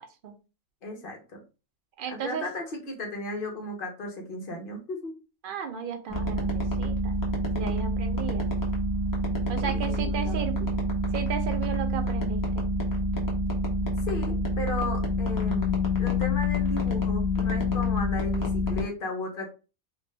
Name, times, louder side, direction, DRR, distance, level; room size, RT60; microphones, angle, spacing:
voice 1, 0.8-1.4 2.1-5.1 7.5-7.8 9.6-10.5 14.1-19.5, left 2 dB, 45° left, 2 dB, 0.9 m, -35 dB
voice 2, 2.0-2.4 5.4-7.2 7.5-8.5 9.5-10.7 11.1-12.6, right 7 dB, 70° right, 5 dB, 0.5 m, -35 dB
sound 1, 6.1-18.8, left 1 dB, 30° left, 0.3 m, -27 dB
2.5 x 2.5 x 3.2 m, 0.32 s
omnidirectional pair, 1.4 m